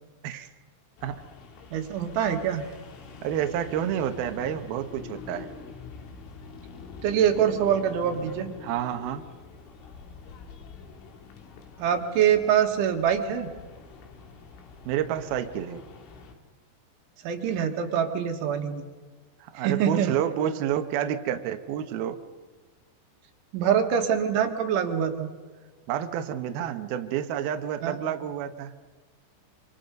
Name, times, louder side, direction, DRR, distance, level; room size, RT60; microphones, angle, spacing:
sound 1, 1.0-16.4, left 5 dB, 85° left, 4.8 m, -45 dB
voice 1, 1.7-2.6 7.0-8.5 11.8-13.5 17.2-18.9 19.6-20.2 23.5-25.3 27.8-28.0, right 8 dB, 85° right, 5 dB, 4.2 m, -24 dB
voice 2, 3.2-5.5 8.6-9.2 14.9-15.8 19.4-22.2 25.9-28.7, right 10 dB, 70° right, 7 dB, 2.6 m, -29 dB
27.0 x 26.0 x 5.4 m, 1.4 s
omnidirectional pair, 5.4 m